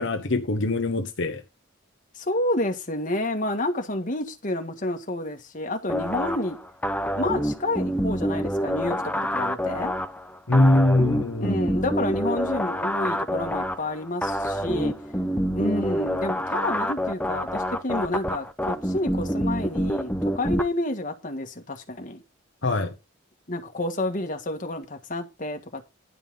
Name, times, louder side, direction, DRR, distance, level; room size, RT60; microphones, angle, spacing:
voice 1, 0.0-1.4 10.5-11.6 22.6-22.9, left 2 dB, 70° left, 1.1 m, -22 dB
voice 2, 2.1-6.6 7.1-9.9 11.4-14.9 15.5-22.2 23.5-25.8, left 1 dB, 40° left, 1.6 m, -29 dB
sound 1, 5.9-20.6, equal, 10° left, 0.7 m, -27 dB
11.0 x 5.5 x 5.4 m
head